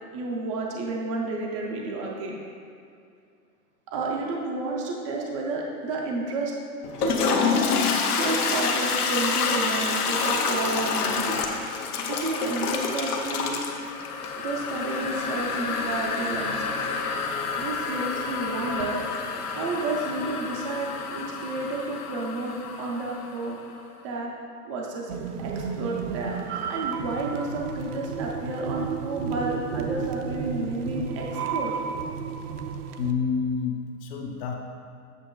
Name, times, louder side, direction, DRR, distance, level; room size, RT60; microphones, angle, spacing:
voice 1, 0.1-2.4 3.9-6.5 7.0-7.8 8.1-11.4 12.1-13.6 14.4-16.9 17.6-19.0 19.5-23.6 24.0-24.3 24.6-25.1 25.4-26.4 26.7-31.7, right 2 dB, 25° right, -2 dB, 0.3 m, -31 dB
Toilet flush, 6.8-23.6, left 5 dB, 85° left, 0.9 m, -28 dB
sound 1, 25.1-33.1, right 6 dB, 80° right, 0.6 m, -32 dB
voice 2, 33.0-34.5, left 6 dB, 40° left, 3 dB, 0.7 m, -28 dB
8.2 x 6.2 x 2.3 m, 2.4 s
supercardioid pair, 150°, 45 cm